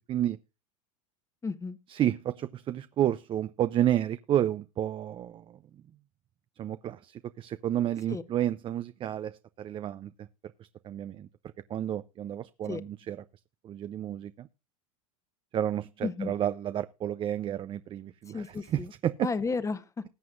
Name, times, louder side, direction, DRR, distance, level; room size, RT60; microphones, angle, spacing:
voice 1, 0.1-0.4 1.9-5.8 6.6-10.3 10.6-11.3 11.7-13.2 13.6-14.5 15.5-19.3, right 11 dB, 30° right, 0.5 m, -31 dB
voice 2, 1.4-1.8 8.1-8.2 12.7-12.8 16.0-16.3 18.3-18.9 19.2-20.0, left 4 dB, 15° left, 1.1 m, -33 dB
19.5 x 7.7 x 2.5 m
hypercardioid pair, 105°, 17 cm